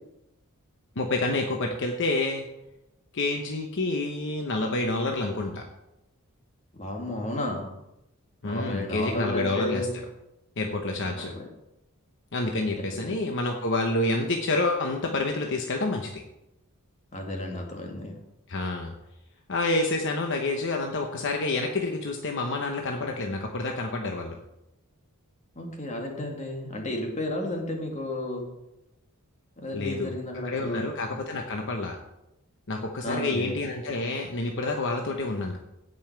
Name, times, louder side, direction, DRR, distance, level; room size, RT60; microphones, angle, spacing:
voice 1, 1.0-2.4 3.1-5.6 8.4-9.9 10.6-11.3 12.3-16.2 18.5-18.9 19.5-24.4 29.7-30.1 30.4-32.0 32.7-35.6, left 2 dB, 55° left, 3 dB, 1.0 m, -28 dB
voice 2, 6.7-7.7 8.4-9.9 11.0-11.5 12.7-13.2 17.1-18.2 25.6-28.5 29.6-30.9 33.0-33.6, left 1 dB, 30° left, 1 dB, 1.9 m, -33 dB
16.0 x 5.6 x 4.6 m, 0.90 s
head